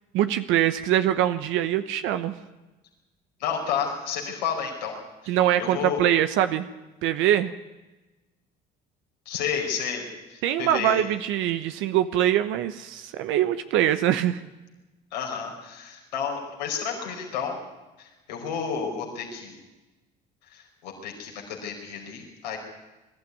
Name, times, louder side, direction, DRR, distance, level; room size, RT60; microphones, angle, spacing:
voice 1, 0.1-2.3 5.3-6.7 7.0-7.5 10.4-14.4, right 11 dB, 70° right, 10 dB, 1.0 m, -23 dB
voice 2, 3.4-5.0 5.2-6.0 9.2-11.0 15.1-17.6 18.0-19.6 20.5-22.6, left 7 dB, 90° left, 0 dB, 4.9 m, -31 dB
22.0 x 13.5 x 9.6 m, 1.1 s
hypercardioid pair, 65°, 21 cm